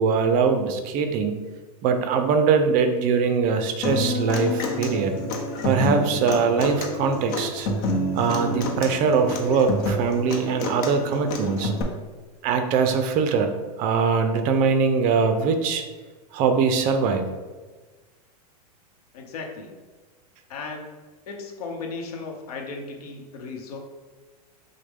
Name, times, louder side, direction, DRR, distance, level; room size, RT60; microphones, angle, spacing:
voice 1, 0.0-1.4 1.8-5.2 5.6-7.7 8.1-11.7 12.4-13.5 13.8-15.8 16.3-17.3, right 5 dB, 40° right, 7 dB, 0.5 m, -22 dB
Human voice / Acoustic guitar, 3.8-11.8, left 1 dB, 45° left, 0.8 m, -28 dB
voice 2, 19.1-19.8 20.5-21.0 21.3-23.8, left 4 dB, 70° left, 2 dB, 0.9 m, -36 dB
6.2 x 2.2 x 3.5 m, 1.3 s
hypercardioid pair, 120°, 20 cm